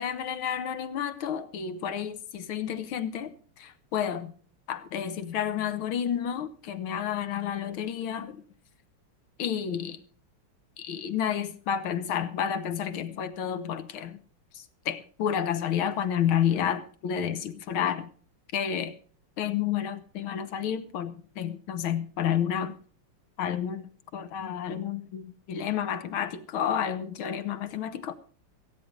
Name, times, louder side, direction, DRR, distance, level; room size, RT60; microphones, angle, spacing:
voice 1, 0.0-4.3 4.7-8.4 9.4-10.0 10.8-14.2 14.5-18.1 18.5-18.9 19.4-22.7 23.4-28.1, left 9 dB, 75° left, 1.8 m, -30 dB
16.0 x 9.4 x 5.2 m
omnidirectional pair, 2.4 m